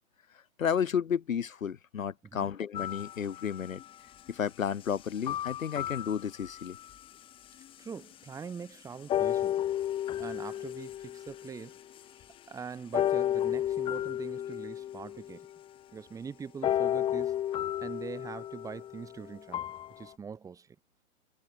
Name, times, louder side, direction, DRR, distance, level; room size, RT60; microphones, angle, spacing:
voice 1, 0.3-3.8 4.3-6.8, left 8 dB, 70° left, 1.9 m, -32 dB
sound 1, 2.7-3.9 5.2-7.0 7.6-7.7 9.1-12.0 12.9-15.6 16.6-20.1, left 11 dB, 10° left, 2.8 m, -33 dB
voice 2, 7.8-9.6 10.2-11.8 12.5-15.5 15.9-19.7 20.0-20.8, right 6 dB, 10° right, 6.7 m, -43 dB
hypercardioid pair, 155°, 42 cm